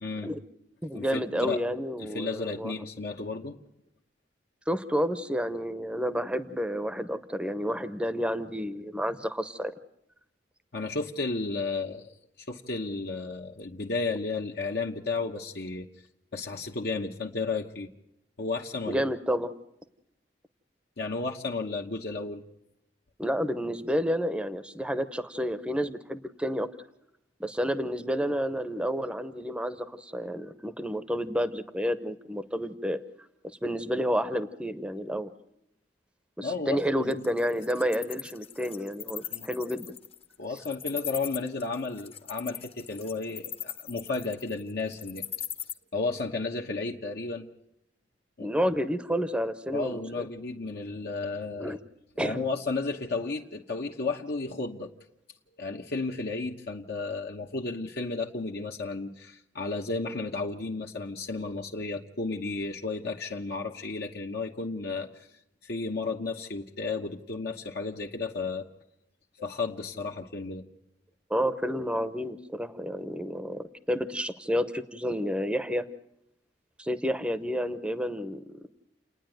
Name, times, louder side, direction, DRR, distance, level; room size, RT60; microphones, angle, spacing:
voice 1, 0.0-0.3 0.9-1.6 2.0-3.6 10.7-15.9 16.3-17.9 18.4-19.0 21.0-22.4 36.4-37.1 39.3-39.5 40.4-45.2 45.9-47.5 48.4-48.5 49.7-51.8 52.2-54.9 55.6-65.3 65.6-68.7 69.4-70.6, left 3 dB, 65° left, 1 dB, 1.0 m, -33 dB
voice 2, 0.8-2.7 4.7-9.7 18.9-19.5 23.2-26.7 27.4-33.0 33.6-35.3 36.4-39.9 48.4-50.3 51.6-51.8 52.2-52.4 71.3-75.8 76.8-78.6, equal, 5° right, 12 dB, 0.7 m, -30 dB
Wild animals, 37.1-45.7, left 9 dB, 35° left, 0.9 m, -39 dB
29.5 x 9.8 x 9.1 m, 0.83 s
head